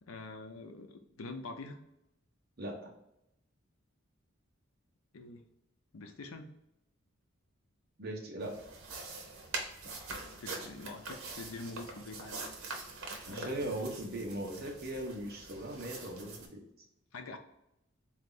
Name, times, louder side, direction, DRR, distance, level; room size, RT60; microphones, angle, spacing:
voice 1, 0.0-1.8 5.1-5.4 5.9-6.5 10.4-12.4 13.2-13.8 17.1-17.4, left 3 dB, 90° left, 6 dB, 0.6 m, -45 dB
voice 2, 2.6-2.9 8.0-8.6 13.3-16.6, right 1 dB, 50° right, 0 dB, 0.9 m, -39 dB
sound 1, 8.4-16.5, right 3 dB, 90° right, 0.8 m, -44 dB
4.0 x 2.8 x 3.8 m, 0.82 s
head